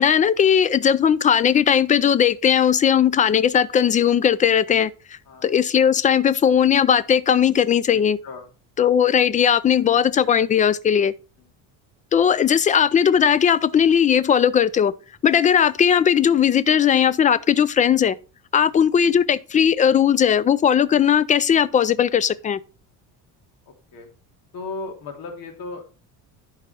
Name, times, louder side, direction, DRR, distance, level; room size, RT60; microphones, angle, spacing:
voice 1, 0.0-4.9 5.4-8.2 8.8-11.1 12.1-14.9 15.2-18.2 18.5-22.6, left 8 dB, 20° left, 0.3 m, -18 dB
voice 2, 7.9-8.5 11.4-11.5 18.6-18.8 23.9-24.1 24.5-25.9, left 3 dB, 65° left, 2.8 m, -36 dB
11.0 x 4.8 x 4.2 m
cardioid pair, 135°, 38 cm